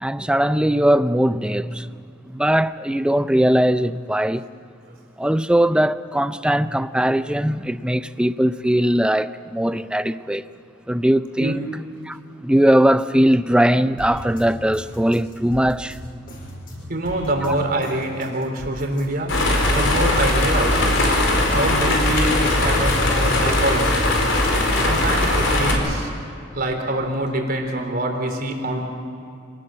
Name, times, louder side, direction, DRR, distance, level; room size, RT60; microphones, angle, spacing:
voice 1, 0.0-2.0 2.3-4.4 5.2-10.4 10.9-11.7 12.0-16.0, right 1 dB, 5° right, 0.5 m, -20 dB
sound 1, 14.0-19.1 19.3-24.5 25.0-26.0, equal, 45° left, 7.3 m, -37 dB
voice 2, 16.9-19.4 19.7-20.8 21.5-24.1 24.8-26.1 26.5-28.8, right 1 dB, 50° right, 3.5 m, -25 dB
sound 2, 19.3-25.7, left 1 dB, 75° left, 4.6 m, -19 dB
26.0 x 18.5 x 7.5 m
head